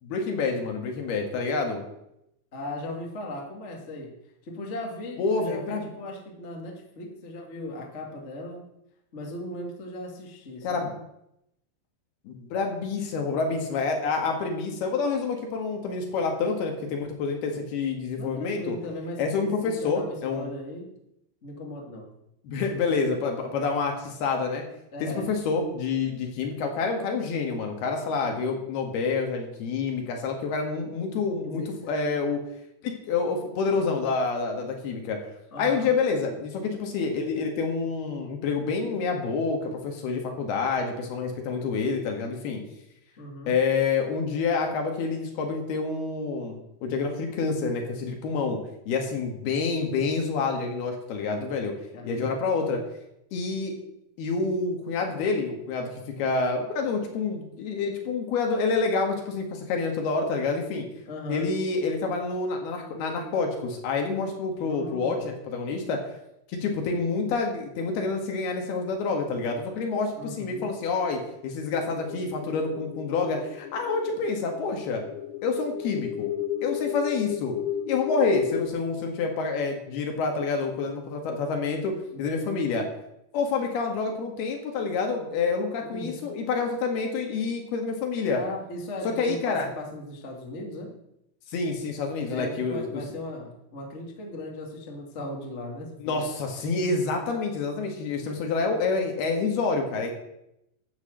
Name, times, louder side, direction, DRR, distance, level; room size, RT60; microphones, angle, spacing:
voice 1, 0.0-1.8 5.2-5.9 10.6-10.9 12.3-18.8 19.2-20.5 22.5-24.6 25.0-32.4 32.8-35.2 35.6-42.6 43.5-48.6 48.9-51.7 52.1-52.8 53.3-53.8 54.2-60.9 61.3-66.0 66.5-75.0 75.4-76.3 76.6-77.6 77.9-82.9 83.3-88.4 89.1-89.7 91.5-93.0 96.0-100.1, left 4 dB, 65° left, 3 dB, 3.5 m, -28 dB
voice 2, 2.5-4.1 4.4-8.7 9.1-10.9 18.2-20.9 21.4-22.1 24.9-25.3 31.1-31.7 35.5-35.9 43.2-43.5 51.9-52.3 61.0-61.5 64.6-65.3 70.2-70.7 85.8-86.1 88.4-90.9 92.3-96.2, left 1 dB, 30° left, 0 dB, 1.3 m, -38 dB
sound 1, 71.7-78.7, left 10 dB, 90° left, 3.1 m, -34 dB
12.5 x 7.6 x 7.7 m, 0.81 s
omnidirectional pair, 5.2 m